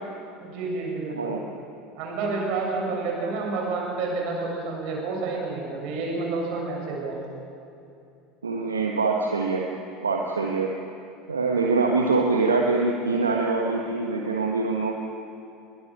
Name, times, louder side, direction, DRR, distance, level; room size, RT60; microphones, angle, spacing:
voice 1, 0.4-1.3 1.9-7.2, right 3 dB, 55° right, -1 dB, 7.2 m, -29 dB
voice 2, 1.1-1.4 8.4-9.7 10.0-10.7 11.3-14.9, right 3 dB, 80° right, 1 dB, 1.4 m, -24 dB
21.0 x 20.5 x 7.2 m, 2.7 s
figure-of-eight pair, 70°, 0 cm